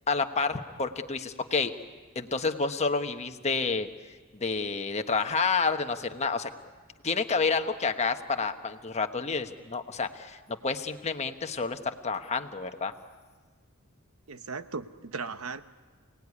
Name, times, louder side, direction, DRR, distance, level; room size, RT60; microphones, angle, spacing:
voice 1, 0.1-1.7 2.1-3.9 4.3-6.5 7.0-12.9, left 4 dB, 30° left, 7 dB, 1.2 m, -29 dB
voice 2, 14.3-15.6, right 4 dB, 85° right, 11 dB, 1.0 m, -37 dB
29.0 x 18.5 x 9.8 m, 1.5 s
head